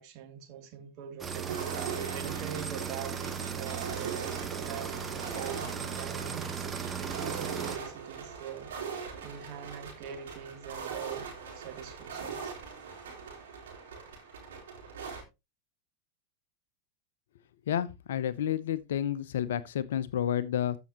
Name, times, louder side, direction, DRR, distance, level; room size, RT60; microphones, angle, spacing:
voice 1, 0.0-1.6 2.1-6.5 7.0-8.7 9.2-11.3 11.5-12.5, right 8 dB, 45° right, 2.9 m, -43 dB
sound 1, 1.2-7.8, right 6 dB, 20° right, 1.3 m, -37 dB
sound 2, 1.5-15.2, right 6 dB, 65° right, 4.2 m, -41 dB
voice 2, 17.7-20.8, left 10 dB, 65° left, 0.6 m, -30 dB
14.0 x 5.9 x 3.0 m
figure-of-eight pair, 85°, 0 cm